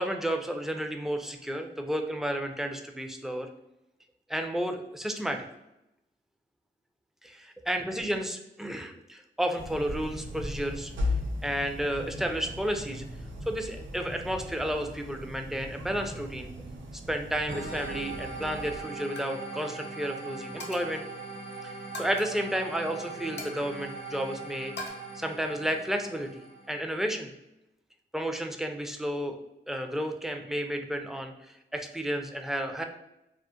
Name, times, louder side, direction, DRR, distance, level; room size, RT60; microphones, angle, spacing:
voice 1, 0.0-3.5 4.3-5.5 7.2-10.9 11.4-13.0 13.5-16.5 17.1-21.0 21.6-24.7 25.1-26.4 26.7-27.3 28.1-29.4 29.7-31.3 31.7-32.8, equal, ahead, 5 dB, 0.4 m, -32 dB
sound 1, 9.6-18.8, left 2 dB, 85° right, 0.5 m, -37 dB
sound 2, 17.5-26.9, right 3 dB, 60° right, 0.9 m, -40 dB
Coin (dropping), 18.4-18.6 19.0-19.3 19.6-19.9 20.6-21.0 21.9-22.3 23.4-24.3 24.8-24.9, left 2 dB, 60° left, 0.7 m, -42 dB
2.2 x 2.0 x 2.8 m, 0.86 s
cardioid pair, 45°, 19 cm